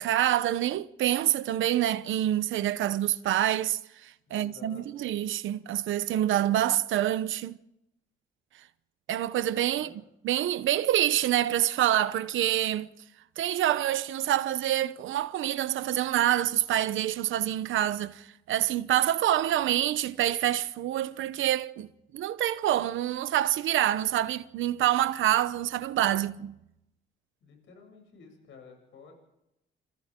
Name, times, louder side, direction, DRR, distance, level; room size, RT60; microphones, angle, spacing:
voice 1, 0.0-7.6 9.1-9.9 10.2-12.9 13.4-21.9 22.1-26.5, right 12 dB, 80° right, 1.0 m, -26 dB
voice 2, 4.3-5.0 9.8-9.9 27.4-29.1, left 5 dB, 75° left, 7.9 m, -51 dB
28.5 x 27.0 x 3.8 m
cardioid pair, 90°, 20 cm